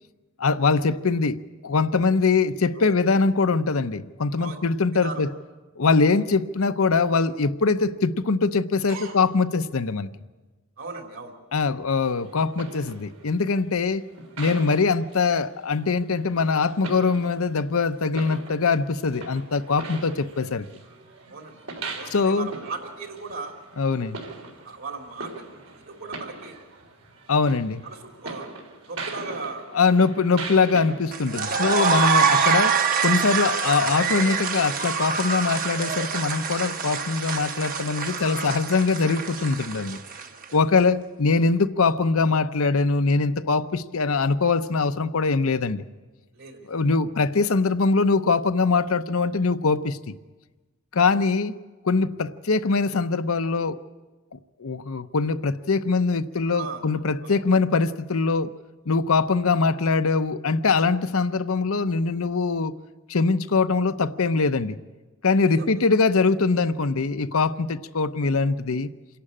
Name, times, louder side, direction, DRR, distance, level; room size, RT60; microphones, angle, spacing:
voice 1, 0.4-1.4 1.6-5.3 5.8-10.1 11.5-14.0 14.4-20.6 22.1-22.5 23.8-24.2 27.3-27.8 29.7-40.0 40.5-45.8 46.7-50.0 50.9-51.5 51.8-53.8 54.3-58.5 58.9-62.7 63.1-64.8 65.2-68.9, left 4 dB, 75° left, 10 dB, 0.7 m, -22 dB
voice 2, 4.9-5.2 8.9-9.2 10.8-11.3 21.3-23.5 24.6-25.3 25.7-26.6 27.8-29.8 31.5-32.0 38.1-38.7 39.9-40.4 46.3-46.8 56.4-56.9 57.2-57.4 65.6-65.8, right 4 dB, 60° right, 2 dB, 3.4 m, -38 dB
sound 1, 12.0-31.9, right 3 dB, 80° right, 3.6 m, -41 dB
sound 2, 31.1-40.4, right 6 dB, 40° right, 1.0 m, -25 dB
27.0 x 11.5 x 8.7 m, 1.2 s
head